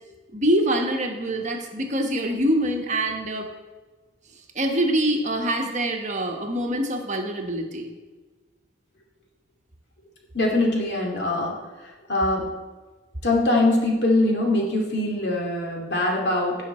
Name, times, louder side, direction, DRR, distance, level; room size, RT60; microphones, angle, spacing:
voice 1, 0.3-3.5 4.5-8.0, right 1 dB, 40° right, 3 dB, 1.2 m, -25 dB
voice 2, 10.3-11.5 12.1-12.4 13.2-16.6, left 2 dB, 65° left, -1 dB, 2.4 m, -22 dB
16.5 x 5.8 x 4.3 m, 1.3 s
head